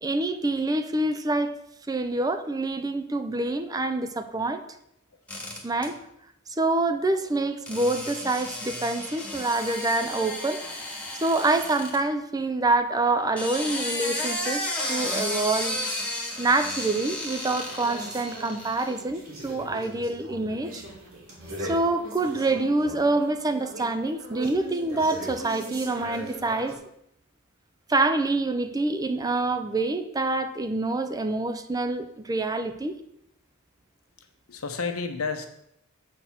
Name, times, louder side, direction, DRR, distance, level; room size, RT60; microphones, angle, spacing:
voice 1, 0.0-1.5 1.9-4.6 5.6-5.9 6.6-10.6 11.2-15.8 16.4-20.8 21.6-26.8 27.9-33.0, right 2 dB, 15° right, 9 dB, 0.4 m, -26 dB
sound 1, 5.3-5.9 7.7-12.0 13.2-19.0, left 1 dB, 5° left, 1.4 m, -33 dB
sound 2, 17.6-26.8, right 1 dB, 80° right, 2.5 m, -40 dB
voice 2, 34.2-35.5, left 4 dB, 80° left, 7 dB, 0.9 m, -32 dB
7.5 x 4.4 x 5.7 m, 0.78 s
head